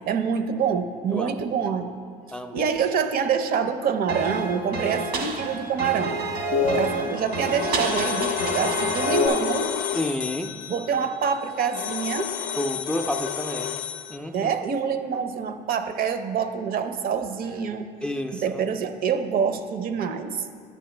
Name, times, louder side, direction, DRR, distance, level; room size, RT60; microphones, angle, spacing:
voice 1, 0.1-2.0 2.5-6.2 6.6-9.7 10.7-12.3 14.3-17.9 18.3-20.4, right 6 dB, 60° right, 9 dB, 0.6 m, -26 dB
voice 2, 2.3-2.7 6.6-6.8 10.0-10.5 12.6-13.8 14.1-14.5 18.0-18.4, left 1 dB, 5° left, 6 dB, 0.3 m, -30 dB
sound 1, 4.1-9.3, equal, 85° right, 1.3 m, -27 dB
sound 2, 6.7-14.2, left 9 dB, 70° left, 0.4 m, -30 dB
10.5 x 7.9 x 3.2 m, 2.2 s
cardioid pair, 110°, 17 cm